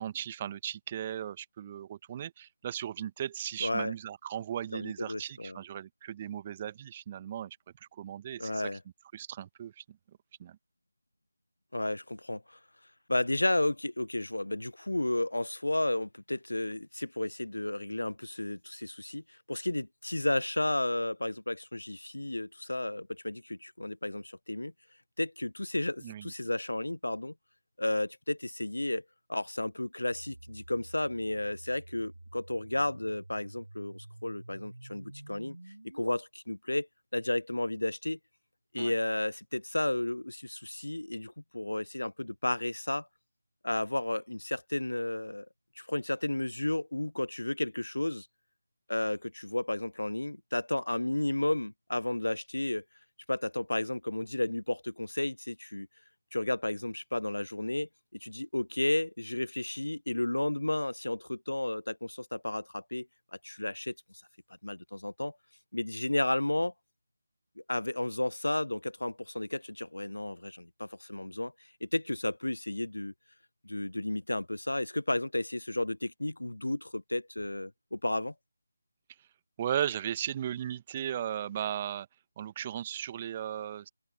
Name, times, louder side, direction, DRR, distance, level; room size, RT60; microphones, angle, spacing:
voice 1, 0.0-8.6 9.1-10.0 10.4-10.6 26.0-26.3 38.7-38.9 79.6-82.1 82.4-83.9, right 10 dB, 25° right, 1.1 m, -36 dB
voice 2, 3.6-3.9 4.7-5.6 8.4-8.8 11.7-12.6 13.1-24.7 25.2-27.3 27.8-29.0 29.3-35.6 35.9-36.9 37.1-38.2 38.7-43.1 43.6-45.5 45.8-48.3 48.9-52.8 53.3-55.9 56.3-57.9 58.2-63.1 63.4-63.9 64.6-65.4 65.7-66.7 67.7-71.5 71.8-73.1 73.6-78.3, left 1 dB, 75° left, 0.4 m, -32 dB
sound 1, 30.1-36.1, right 2 dB, 70° right, 4.5 m, -49 dB
open air
figure-of-eight pair, 155°, 0 cm